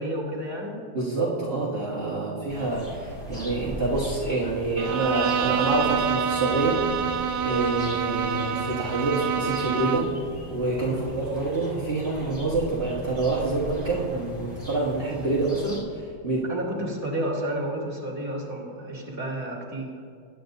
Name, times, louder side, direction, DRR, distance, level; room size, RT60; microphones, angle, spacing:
voice 1, 0.0-0.8 2.1-2.4 10.8-11.0 16.5-19.9, right 1 dB, 10° right, -4 dB, 2.5 m, -31 dB
voice 2, 0.9-6.8 7.4-10.1 10.5-16.5, right 2 dB, 35° right, -6 dB, 1.6 m, -27 dB
sound 1, 2.5-15.8, left 1 dB, 25° left, 2.8 m, -39 dB
Bowed string instrument, 4.8-10.2, right 7 dB, 70° right, 1.0 m, -27 dB
21.0 x 9.4 x 2.7 m, 2.3 s
omnidirectional pair, 2.0 m